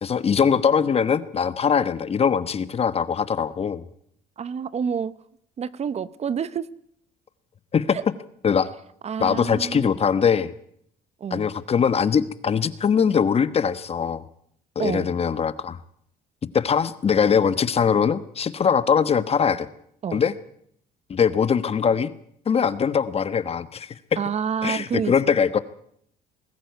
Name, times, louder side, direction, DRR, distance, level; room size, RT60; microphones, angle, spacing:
voice 1, 0.0-3.8 7.7-8.0 8.4-8.7 9.2-10.5 11.3-14.2 14.7-15.8 16.5-19.7 20.1-20.3 21.1-22.1 22.5-24.2 24.6-25.6, left 7 dB, 35° left, 15 dB, 1.2 m, -22 dB
voice 2, 4.4-5.1 5.6-6.7 7.9-8.0 9.0-9.9 11.2-11.5 14.8-15.1 20.0-20.2 24.2-25.1, right 7 dB, 40° right, 17 dB, 0.9 m, -28 dB
21.0 x 14.0 x 9.4 m, 0.68 s
cardioid pair, 110°, 17 cm